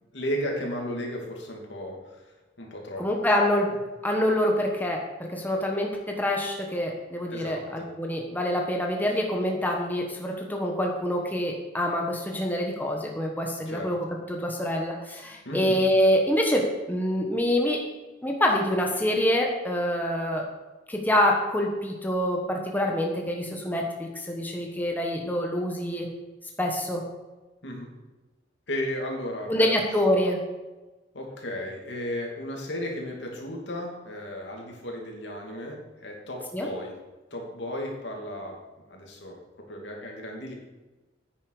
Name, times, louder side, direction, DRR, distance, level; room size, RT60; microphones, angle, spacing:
voice 1, 0.1-3.1 7.3-7.9 13.7-13.9 15.4-15.8 27.6-27.9 28.7-29.7 31.1-36.9 37.3-38.6 38.9-40.5, left 1 dB, 70° left, 0 dB, 2.7 m, -34 dB
voice 2, 3.0-3.7 4.0-14.0 14.3-17.8 18.2-20.5 20.9-26.1 26.6-27.0 29.5-30.4 36.5-36.7, left 1 dB, 10° left, 0 dB, 1.3 m, -26 dB
10.5 x 9.6 x 4.9 m, 1.1 s
head